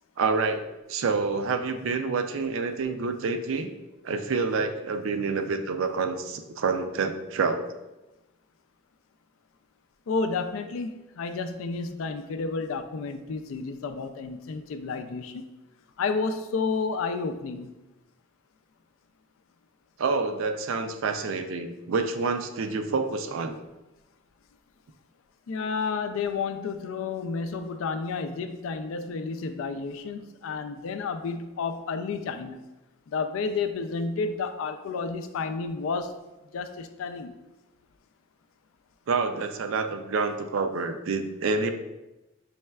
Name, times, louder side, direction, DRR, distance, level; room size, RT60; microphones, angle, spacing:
voice 1, 0.2-0.6 0.9-3.7 4.0-7.7 20.0-23.6 39.1-41.7, right 4 dB, 75° right, 7 dB, 0.4 m, -28 dB
voice 2, 10.1-15.4 16.0-17.7 25.5-32.6 33.1-36.1 36.5-37.4, left 4 dB, 80° left, 8 dB, 0.3 m, -31 dB
5.5 x 3.2 x 2.3 m, 1.0 s
head